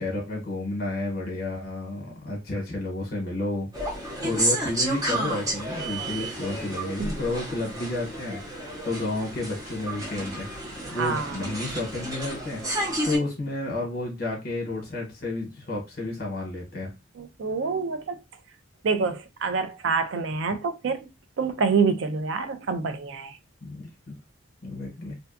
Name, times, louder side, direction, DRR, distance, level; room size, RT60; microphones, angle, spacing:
voice 1, 0.0-3.7 4.2-10.5 10.9-12.6 13.0-16.9 23.6-24.1 24.6-25.2, left 2 dB, 45° left, 0.9 m, -31 dB
sound 1, 3.7-13.2, right 1 dB, 15° right, 0.7 m, -31 dB
voice 2, 10.9-11.4 17.2-18.2 18.8-21.1 21.4-23.4, right 5 dB, 60° right, 0.4 m, -27 dB
2.6 x 2.2 x 2.4 m
head